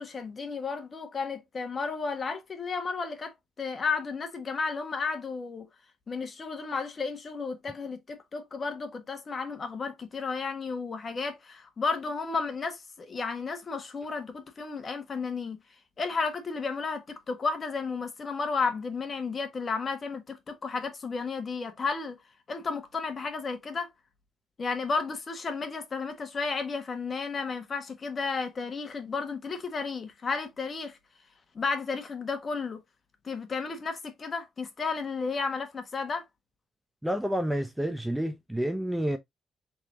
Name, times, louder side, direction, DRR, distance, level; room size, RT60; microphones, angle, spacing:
voice 1, 0.0-5.7 6.1-15.6 16.0-22.1 22.5-23.9 24.6-31.0 31.5-32.8 33.2-36.2, left 4 dB, 40° left, 1.4 m, -33 dB
voice 2, 37.0-39.2, equal, 5° right, 0.7 m, -29 dB
4.4 x 3.9 x 2.7 m
cardioid pair, 90°, 0 cm